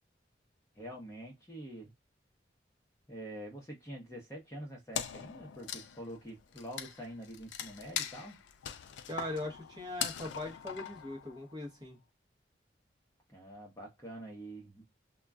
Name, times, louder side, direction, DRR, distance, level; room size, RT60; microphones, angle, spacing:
voice 1, 0.7-1.9 3.1-8.4 13.3-14.8, right 1 dB, 15° left, 0.7 m, -46 dB
Wood, 4.9-11.7, left 9 dB, 80° left, 0.3 m, -41 dB
voice 2, 9.1-12.0, left 1 dB, 20° right, 0.7 m, -40 dB
2.2 x 2.1 x 3.5 m
head